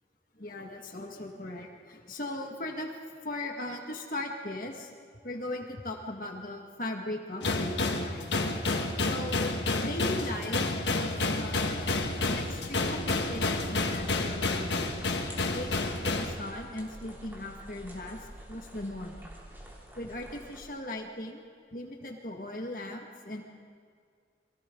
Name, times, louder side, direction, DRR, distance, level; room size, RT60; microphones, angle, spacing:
voice 1, 0.4-2.9 3.2-4.9 5.2-8.3 9.0-11.8 12.2-14.9 15.5-18.2 18.5-19.2 20.0-21.4 21.7-23.4, left 1 dB, 50° left, 1 dB, 1.9 m, -38 dB
sound 1, 7.4-16.3, left 2 dB, 85° left, 1.6 m, -30 dB
sound 2, 11.3-20.6, equal, 10° right, 3.2 m, -49 dB
30.0 x 23.5 x 3.9 m, 2.1 s
head